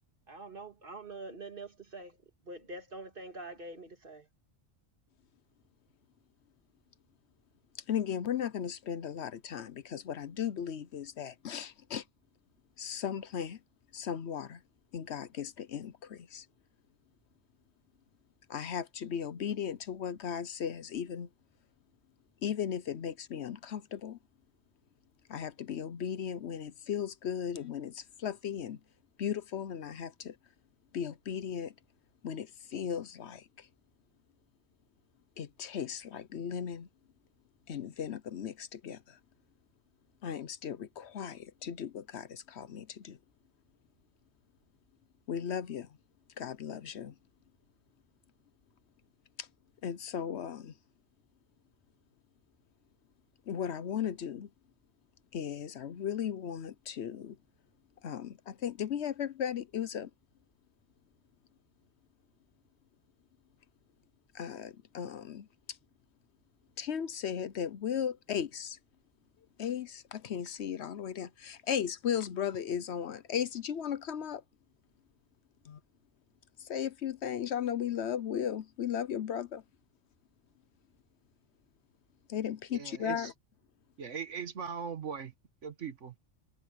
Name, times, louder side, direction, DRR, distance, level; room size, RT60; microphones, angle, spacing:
voice 1, 0.3-2.2 2.4-4.3, right 2 dB, 45° right, 2.4 m, -45 dB
voice 2, 7.9-12.0 12.8-13.6 13.9-14.6 14.9-16.4 18.5-21.3 22.4-24.2 25.3-28.8 29.2-30.3 30.9-31.7 32.2-33.4 35.4-36.9 37.7-39.0 40.2-43.2 45.3-45.9 46.4-47.1 49.8-50.7 53.5-54.5 55.3-57.4 58.0-60.1 64.3-65.5 66.8-68.8 69.6-74.4 75.7-75.8 76.7-79.6 82.3-83.3, left 8 dB, 65° left, 1.0 m, -36 dB
voice 3, 82.7-83.3 84.0-85.3 85.6-86.2, right 6 dB, 75° right, 1.7 m, -39 dB
omnidirectional pair, 1.2 m